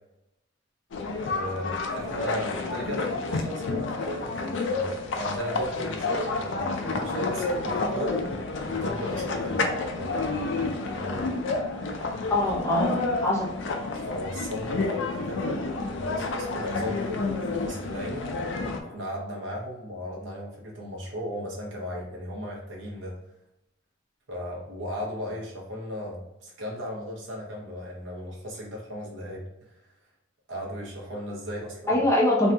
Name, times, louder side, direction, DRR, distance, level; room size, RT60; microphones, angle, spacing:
sound 1, 0.9-18.8, left 3 dB, 70° left, 0.4 m, -30 dB
voice 1, 1.2-8.3 8.7-11.3 14.0-18.3 18.8-23.1 24.3-29.8 30.5-32.0, equal, 75° right, -2 dB, 0.8 m, -36 dB
voice 2, 12.3-13.6 31.9-32.5, left 1 dB, 15° left, -3 dB, 0.6 m, -23 dB
2.7 x 2.2 x 2.6 m, 0.92 s
head